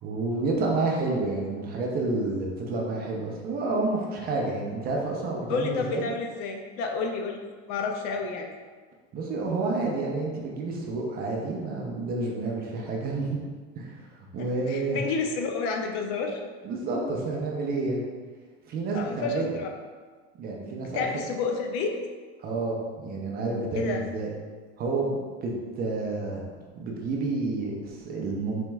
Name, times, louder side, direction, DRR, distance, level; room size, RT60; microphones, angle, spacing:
voice 1, 0.0-6.1 9.1-13.4 13.8-14.0 14.3-15.0 16.6-18.0 18.7-19.6 20.4-21.1 22.4-24.3 24.8-26.4 26.8-28.6, right 3 dB, 30° right, -1 dB, 0.5 m, -29 dB
voice 2, 5.5-8.5 14.4-16.4 18.9-19.7 20.8-22.0 23.7-24.0, left 4 dB, 50° left, 3 dB, 0.4 m, -30 dB
4.2 x 2.9 x 2.2 m, 1.5 s
supercardioid pair, 140°, 31 cm